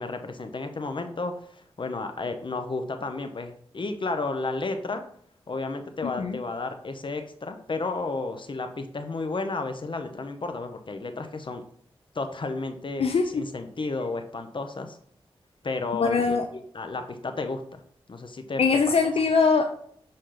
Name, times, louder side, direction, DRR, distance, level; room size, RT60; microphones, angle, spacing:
voice 1, 0.0-5.0 5.5-11.6 12.1-15.0 15.6-17.8 18.1-18.9, left 3 dB, 55° left, 6 dB, 0.9 m, -32 dB
voice 2, 6.0-6.4 13.0-13.4 16.0-16.4 18.6-19.6, left 4 dB, 75° left, 5 dB, 0.6 m, -22 dB
6.5 x 4.2 x 3.9 m, 0.64 s
cardioid pair, 50°, 10 cm